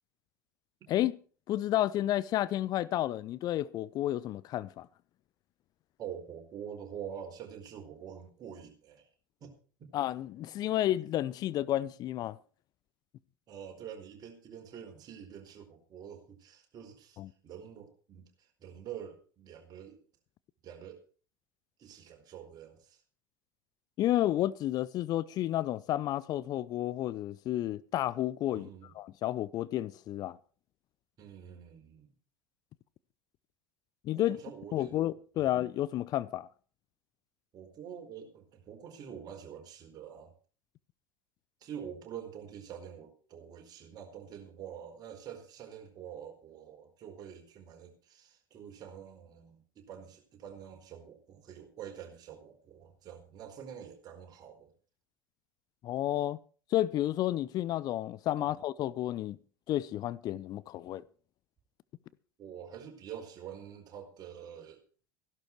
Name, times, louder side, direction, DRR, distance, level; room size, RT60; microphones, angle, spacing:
voice 1, 1.5-4.9 9.9-12.4 17.2-17.3 24.0-28.7 28.9-30.4 34.0-34.4 34.7-36.5 55.8-56.4 56.7-59.4 59.7-61.0, left 13 dB, 35° left, 0.6 m, -31 dB
voice 2, 6.0-9.1 9.4-9.5 9.8-9.9 13.5-20.0 20.6-21.0 21.8-23.0 28.5-28.9 31.2-32.1 34.1-35.0 35.3-35.5 37.5-40.3 41.6-54.7 58.4-58.5 62.4-64.8, right 8 dB, 35° right, 4.6 m, -46 dB
15.5 x 11.5 x 4.7 m
figure-of-eight pair, 80°, 11 cm